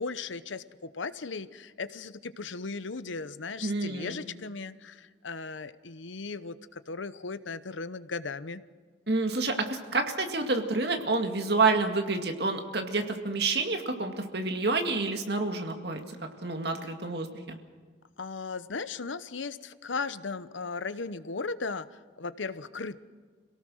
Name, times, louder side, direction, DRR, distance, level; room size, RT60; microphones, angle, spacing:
voice 1, 0.0-8.6 18.2-23.0, left 4 dB, 90° left, 14 dB, 0.9 m, -37 dB
voice 2, 3.6-4.2 9.1-16.0 16.4-17.6, right 3 dB, 60° right, 5 dB, 2.2 m, -28 dB
26.5 x 18.0 x 6.4 m, 1.6 s
head